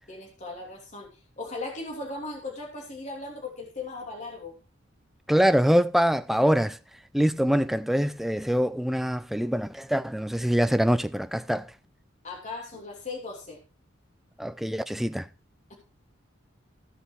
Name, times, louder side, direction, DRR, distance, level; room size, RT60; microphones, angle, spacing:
voice 1, 0.1-1.1 1.4-4.5 12.2-13.6 15.7-15.8, left 3 dB, 40° left, 2.9 m, -37 dB
voice 2, 5.3-6.8 7.1-11.7 14.4-15.3, equal, ahead, 0.5 m, -24 dB
15.5 x 5.7 x 4.7 m
head